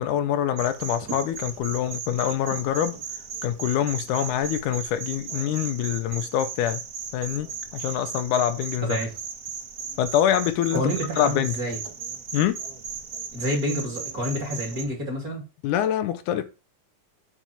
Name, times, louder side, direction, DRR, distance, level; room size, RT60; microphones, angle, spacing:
voice 1, 0.0-3.0 3.4-6.8 7.1-7.5 7.7-9.0 10.0-10.8 11.2-11.6 12.3-12.6 15.6-16.4, left 10 dB, 80° left, 2.1 m, -25 dB
sound 1, 0.6-14.8, right 5 dB, 60° right, 1.0 m, -36 dB
voice 2, 8.8-9.1 10.7-11.8 13.3-15.4, equal, 30° right, 2.2 m, -28 dB
7.5 x 4.3 x 6.9 m
omnidirectional pair, 3.7 m